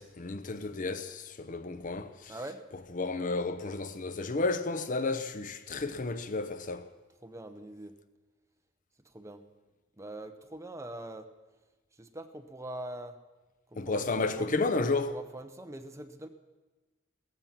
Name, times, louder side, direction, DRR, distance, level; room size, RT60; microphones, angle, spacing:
voice 1, 0.0-2.3 2.9-6.9 13.8-15.2, left 3 dB, 40° left, 0.7 m, -32 dB
voice 2, 2.3-2.6 7.2-7.9 9.1-9.4 10.0-11.3 12.0-13.2 13.7-14.5 14.8-16.3, right 1 dB, 15° right, 0.9 m, -43 dB
16.5 x 14.5 x 5.9 m
head